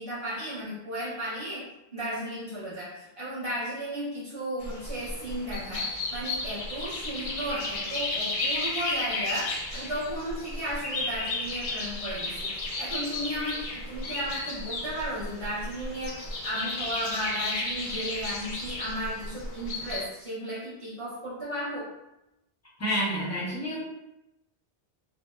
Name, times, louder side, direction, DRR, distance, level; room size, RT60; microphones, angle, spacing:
voice 1, 0.0-1.6 1.9-21.9, equal, 30° right, -11 dB, 1.0 m, -35 dB
sound 1, 4.6-20.0, left 2 dB, 60° left, 0.6 m, -33 dB
voice 2, 22.8-23.8, equal, 20° left, -7 dB, 0.6 m, -29 dB
2.8 x 2.0 x 2.2 m, 0.92 s
omnidirectional pair, 1.1 m